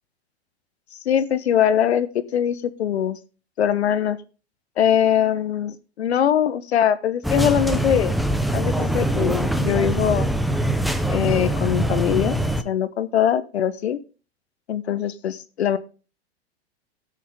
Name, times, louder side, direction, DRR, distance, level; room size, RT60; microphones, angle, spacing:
voice 1, 1.0-3.2 3.6-4.2 4.8-8.1 8.5-10.3 11.1-12.4 12.6-14.0 14.7-15.8, left 9 dB, 75° left, 13 dB, 1.1 m, -22 dB
sound 1, 7.2-12.6, right 1 dB, ahead, 0.6 m, -23 dB
16.5 x 6.5 x 3.6 m, 0.36 s
hypercardioid pair, 95°, 32 cm